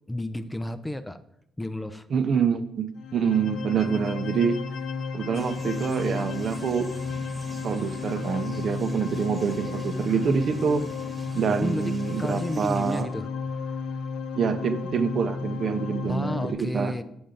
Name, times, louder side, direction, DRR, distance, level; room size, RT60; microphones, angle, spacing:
voice 1, 0.1-1.2 1.6-2.1 8.3-8.4 8.8-8.9 9.2-9.3 9.6-9.7 10.1-10.2 11.6-11.9 12.2-14.0 16.0-17.0, left 1 dB, 10° left, 12 dB, 0.5 m, -32 dB
voice 2, 2.1-4.6 5.1-6.9 7.6-10.9 11.3-13.1 14.4-16.9, right 6 dB, 55° right, 9 dB, 0.7 m, -26 dB
sound 1, 2.9-16.5, left 5 dB, 85° left, 0.6 m, -33 dB
sound 2, 5.3-13.0, right 2 dB, 30° right, 1.3 m, -44 dB
7.0 x 6.5 x 3.8 m, 0.79 s
cardioid pair, 90°, 0 cm